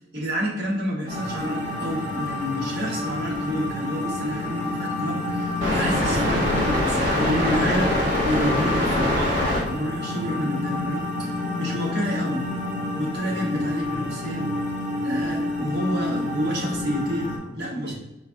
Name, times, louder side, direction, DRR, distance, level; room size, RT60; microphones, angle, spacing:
voice 1, 0.1-11.3 11.6-12.5 12.9-14.5 15.0-18.0, equal, 60° right, -3 dB, 1.3 m, -29 dB
sound 1, 1.1-17.4, left 1 dB, 35° right, 1.5 m, -26 dB
5.1 x 2.7 x 3.6 m, 0.98 s
head